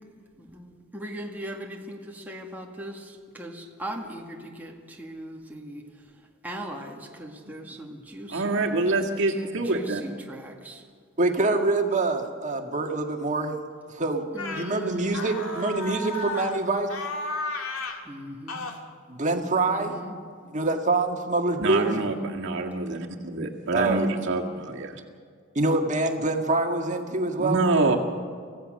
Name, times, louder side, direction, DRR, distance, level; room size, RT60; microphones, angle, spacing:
voice 1, 0.4-5.8 6.4-8.6 9.3-10.8 14.3-15.2 18.1-18.6 19.7-20.1 21.9-22.3, equal, 10° right, -1 dB, 1.9 m, -39 dB
voice 2, 8.3-10.0 21.6-25.0 27.4-28.0, right 2 dB, 60° right, 0 dB, 1.9 m, -26 dB
voice 3, 11.2-13.6 13.9-14.2 14.5-16.9 19.1-19.9 20.5-22.0 23.7-24.1 25.6-27.6, right 2 dB, 35° right, 4 dB, 1.8 m, -25 dB
sound 1, 14.4-14.7 15.1-16.6 16.9-18.0 18.5-18.8, left 2 dB, 75° left, 2.1 m, -33 dB
25.5 x 16.0 x 6.5 m, 2.1 s
head